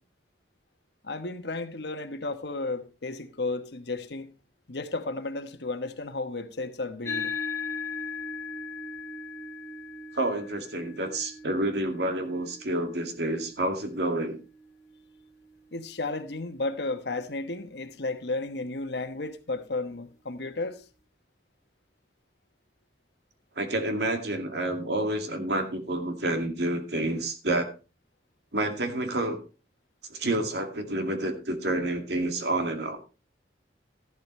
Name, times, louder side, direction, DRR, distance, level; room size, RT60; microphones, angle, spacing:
voice 1, 1.0-4.3 4.7-7.3 15.7-20.8, left 2 dB, 70° left, 1.2 m, -33 dB
sound 1, 7.0-15.8, left 4 dB, 15° left, 1.6 m, -38 dB
voice 2, 10.1-14.4 23.6-27.7 28.5-29.4 30.1-33.0, right 1 dB, 70° right, 2.2 m, -29 dB
13.5 x 11.5 x 3.2 m
head